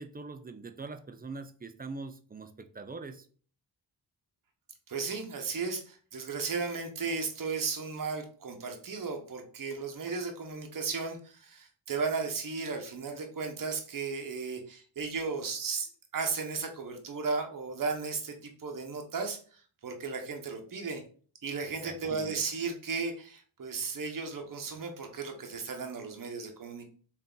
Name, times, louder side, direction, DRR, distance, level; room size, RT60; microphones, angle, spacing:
voice 1, 0.0-3.3 21.6-22.4, right 3 dB, 20° right, 8 dB, 0.4 m, -43 dB
voice 2, 4.9-21.0 21.4-26.9, right 4 dB, 45° right, 3 dB, 0.9 m, -35 dB
3.5 x 2.7 x 3.8 m, 0.43 s
cardioid pair, 50°, 44 cm